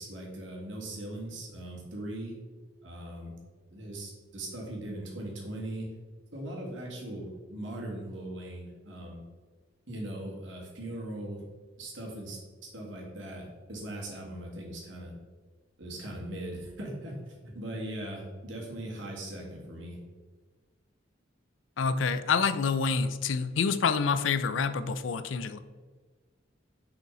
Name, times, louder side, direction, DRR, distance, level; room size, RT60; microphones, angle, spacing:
voice 1, 0.0-2.3 2.8-3.3 3.7-5.9 6.3-9.2 9.9-11.4 11.8-15.1 15.8-20.0, right 1 dB, 85° right, -2 dB, 1.9 m, -39 dB
voice 2, 21.8-25.6, left 5 dB, 90° left, 13 dB, 0.4 m, -27 dB
6.4 x 5.1 x 3.8 m, 1.4 s
head